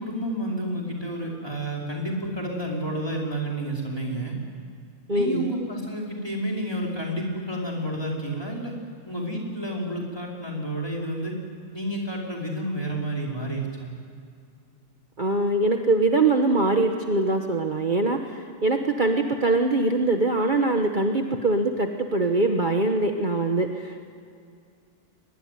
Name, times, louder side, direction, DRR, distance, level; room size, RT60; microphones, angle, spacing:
voice 1, 0.0-4.4 5.1-8.7 9.0-11.4 11.7-13.9, right 1 dB, 20° left, -2 dB, 5.1 m, -30 dB
voice 2, 5.1-5.5 15.2-24.0, right 2 dB, 40° right, 4 dB, 1.4 m, -23 dB
23.5 x 21.5 x 9.6 m, 2.3 s
omnidirectional pair, 1.4 m